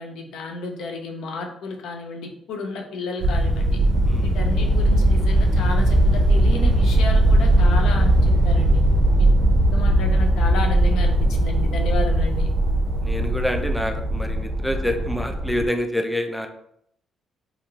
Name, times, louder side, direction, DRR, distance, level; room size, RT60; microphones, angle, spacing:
voice 1, 0.0-3.8 4.2-8.8 9.2-9.3 9.7-12.5, left 3 dB, 80° left, 3 dB, 0.5 m, -32 dB
sound 1, 3.2-15.7, right 1 dB, 60° right, 0.4 m, -19 dB
voice 2, 13.0-16.5, left 1 dB, 5° left, 5 dB, 0.4 m, -27 dB
2.9 x 2.8 x 2.4 m, 0.73 s
cardioid pair, 90°, 0 cm